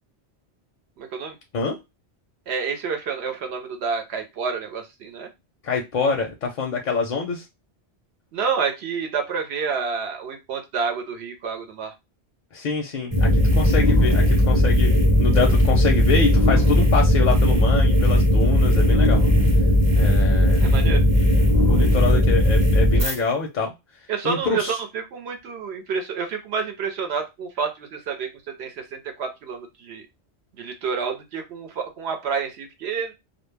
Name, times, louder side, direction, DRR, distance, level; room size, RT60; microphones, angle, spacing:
voice 1, 1.0-1.4 2.5-5.3 8.3-11.9 20.6-21.0 24.1-30.0 30.6-33.1, right 5 dB, 75° right, 5 dB, 0.8 m, -29 dB
voice 2, 5.6-7.4 12.5-19.2 20.0-20.7 21.1-21.3 21.7-23.7 24.2-24.8, left 4 dB, 60° left, 2 dB, 0.6 m, -26 dB
sound 1, 13.1-23.2, left 1 dB, 15° right, 0.6 m, -17 dB
2.2 x 2.0 x 3.1 m, 0.23 s
omnidirectional pair, 1.1 m